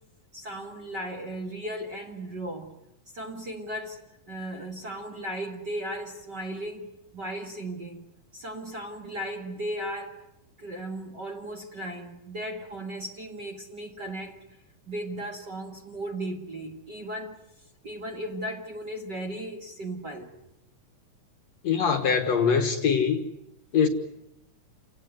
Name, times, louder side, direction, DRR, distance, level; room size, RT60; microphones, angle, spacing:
voice 1, 0.3-2.7 3.1-4.0 4.3-8.0 8.3-10.2 10.6-14.4 14.9-17.4 17.8-20.3, right 1 dB, 35° right, 1.9 m, -36 dB
voice 2, 21.6-23.2 23.7-23.9, left 6 dB, 55° left, 2.4 m, -23 dB
29.0 x 18.0 x 9.4 m
omnidirectional pair, 4.1 m